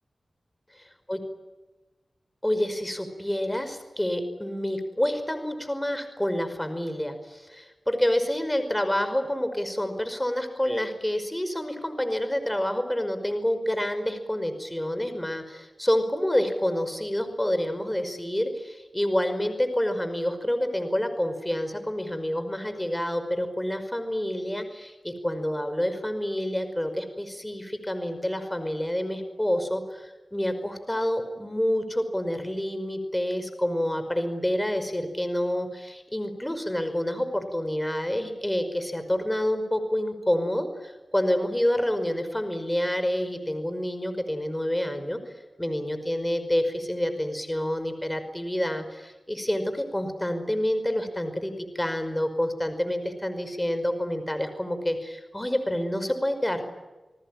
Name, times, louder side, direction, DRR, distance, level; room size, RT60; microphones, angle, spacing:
voice 1, 2.4-45.2 45.6-56.6, left 1 dB, 10° left, 9 dB, 5.3 m, -28 dB
30.0 x 19.5 x 9.1 m, 1.2 s
cardioid pair, 50°, 0 cm